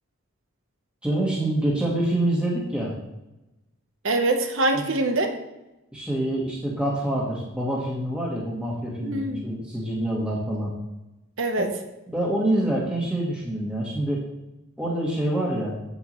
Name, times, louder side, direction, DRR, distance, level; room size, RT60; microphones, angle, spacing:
voice 1, 1.0-2.9 4.7-4.8 5.9-10.7 11.6-11.7 12.1-14.2 14.8-15.8, right 1 dB, 5° right, -5 dB, 1.4 m, -26 dB
voice 2, 4.0-5.3 9.0-9.4 11.4-11.7, right 2 dB, 60° right, 5 dB, 1.0 m, -24 dB
8.3 x 8.1 x 3.1 m, 0.97 s
head